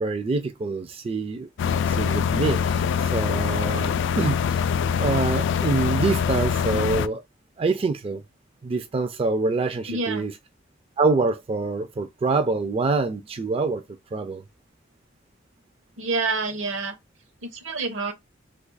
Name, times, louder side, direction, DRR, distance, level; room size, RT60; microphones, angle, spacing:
voice 1, 0.0-1.5 1.8-4.7 5.0-7.2 7.6-8.2 8.6-10.3 11.0-13.8 14.1-14.4, right 3 dB, 30° right, 0.3 m, -25 dB
sound 1, 1.6-7.1, left 7 dB, 65° left, 0.3 m, -24 dB
voice 2, 9.9-10.3 16.0-16.9 17.4-18.1, right 3 dB, 75° right, 0.9 m, -27 dB
2.8 x 2.3 x 3.8 m
head